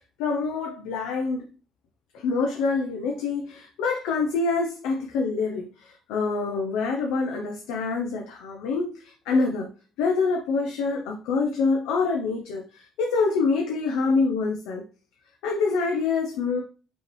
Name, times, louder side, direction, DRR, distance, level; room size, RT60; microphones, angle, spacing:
voice 1, 0.2-1.5 2.1-9.7 10.0-14.8 15.4-16.6, left 4 dB, 80° left, 1 dB, 0.6 m, -26 dB
5.3 x 3.1 x 3.0 m, 0.36 s
hypercardioid pair, 60°, 0 cm